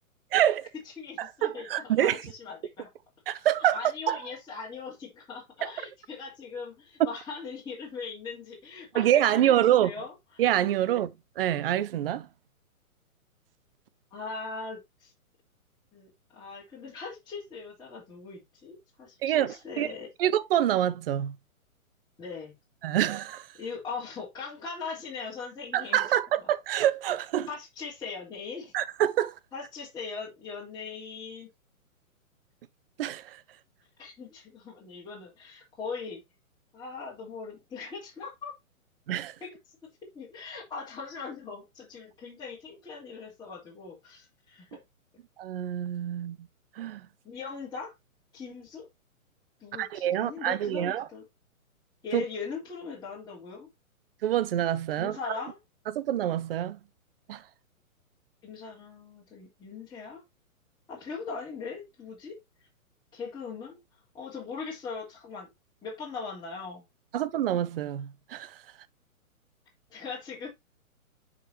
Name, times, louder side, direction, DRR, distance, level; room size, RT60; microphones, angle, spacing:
voice 1, 0.3-0.7 1.2-2.2 3.3-3.8 4.1-4.2 5.6-5.7 8.9-9.9 10.4-12.3 19.2-19.9 20.2-21.3 22.8-23.5 25.7-27.5 28.7-29.3 33.0-33.4 39.1-39.3 45.4-46.4 46.8-47.1 49.8-51.1 52.1-52.2 54.2-55.2 55.9-56.8 57.3-57.4 67.1-68.5, right 11 dB, 40° right, 0.7 m, -26 dB
voice 2, 1.0-2.9 3.7-10.4 10.8-10.9 14.1-15.1 15.9-20.1 22.2-22.5 23.6-26.0 27.5-28.7 29.5-31.5 34.0-36.2 36.7-38.5 39.4-39.5 40.1-44.8 47.2-47.9 48.3-48.9 49.6-51.2 52.0-53.7 55.0-55.6 58.4-60.2 60.9-62.4 63.1-63.8 64.1-65.5 65.8-66.8 69.9-70.5, left 5 dB, 10° left, 3.5 m, -40 dB
10.0 x 5.1 x 2.9 m
hypercardioid pair, 135°, 43 cm